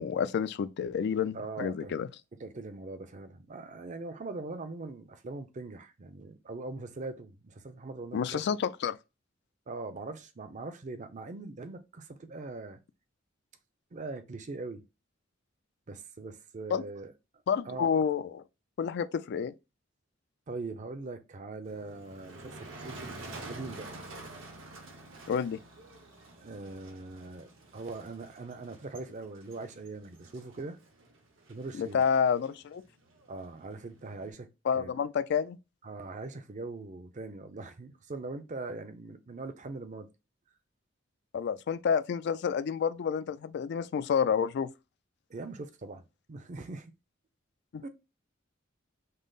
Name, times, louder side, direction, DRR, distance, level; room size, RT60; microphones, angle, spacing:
voice 1, 0.0-2.1 8.1-9.0 16.7-16.8 17.5-18.4 18.8-19.5 25.3-25.6 31.8-32.8 34.7-35.6 41.3-44.7 47.7-47.8, left 7 dB, 55° left, 0.3 m, -29 dB
voice 2, 1.3-1.9 2.4-8.4 9.7-12.8 13.9-14.9 15.9-17.1 17.6-17.9 20.5-23.1 23.5-23.9 26.4-30.8 31.5-32.0 33.3-34.9 35.8-40.1 45.3-46.9 47.8-47.9, right 3 dB, 40° right, 0.5 m, -41 dB
Motor vehicle (road), 21.6-34.3, right 2 dB, 70° right, 1.0 m, -49 dB
5.3 x 2.0 x 3.8 m
head